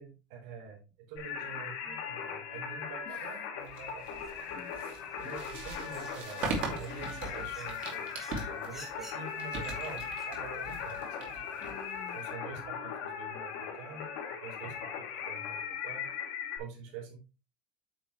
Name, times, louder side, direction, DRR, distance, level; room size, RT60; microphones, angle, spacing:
voice 1, 0.0-4.2 5.2-8.2 8.5-11.4 12.1-16.1 16.6-17.2, right 5 dB, 75° right, 3.7 m, -46 dB
Singing, 1.2-16.6, left 7 dB, 75° left, 2.6 m, -39 dB
sound 1, 3.7-10.4, right 1 dB, 10° right, 2.0 m, -55 dB
sound 2, 3.7-12.3, right 3 dB, 45° right, 2.5 m, -41 dB
voice 2, 4.5-5.8 6.9-7.2 11.6-12.2, left 7 dB, 45° left, 1.5 m, -51 dB
8.7 x 6.0 x 3.1 m
cardioid pair, 175°, 3 cm